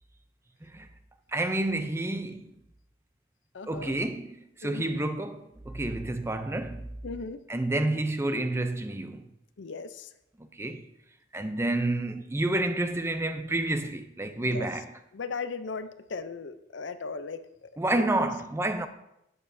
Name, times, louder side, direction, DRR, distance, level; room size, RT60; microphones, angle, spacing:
voice 1, 1.3-2.5 3.7-6.8 7.5-9.2 10.4-10.9 11.3-14.9 17.8-18.9, right 2 dB, 15° right, 0.5 m, -29 dB
voice 2, 3.5-3.9 4.6-5.0 7.0-7.4 9.6-10.1 14.4-14.7 15.1-17.7 17.9-18.3, left 4 dB, 75° left, 0.5 m, -37 dB
12.5 x 8.8 x 2.7 m
head